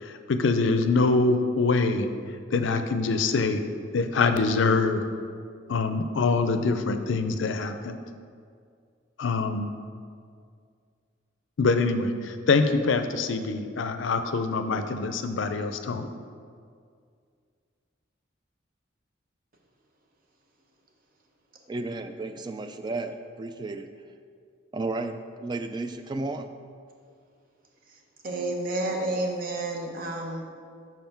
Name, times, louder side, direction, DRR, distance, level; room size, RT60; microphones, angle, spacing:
voice 1, 0.0-2.1 2.5-3.6 3.9-5.0 5.7-8.0 9.2-9.7 11.6-16.1, left 3 dB, 70° left, 8 dB, 0.5 m, -24 dB
voice 2, 21.7-23.1 23.4-23.9 24.7-26.4, right 2 dB, 25° right, 8 dB, 0.3 m, -33 dB
voice 3, 28.2-30.4, right 2 dB, 45° right, 1 dB, 0.9 m, -30 dB
5.7 x 4.6 x 5.8 m, 2.2 s
head